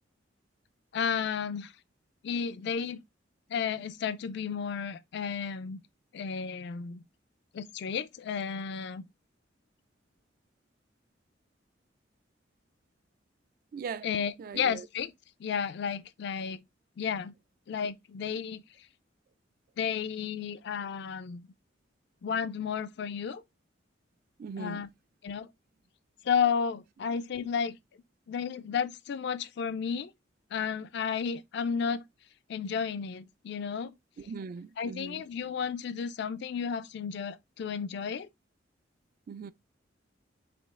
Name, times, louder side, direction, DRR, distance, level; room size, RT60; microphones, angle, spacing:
voice 1, 0.9-1.7 2.2-3.0 3.5-5.8 6.1-7.0 7.5-9.1 14.0-15.1 15.4-16.6 17.0-17.3 17.7-18.6 19.8-21.5 22.2-23.4 24.6-24.9 25.2-25.5 26.2-27.8 28.3-30.1 30.5-32.0 32.5-33.9 34.8-38.3, left 6 dB, 65° left, 0.4 m, -32 dB
voice 2, 13.7-14.1 14.4-14.9 24.4-24.9 34.2-35.2 39.3-39.5, right 5 dB, 50° right, 0.3 m, -40 dB
5.1 x 2.4 x 3.5 m
head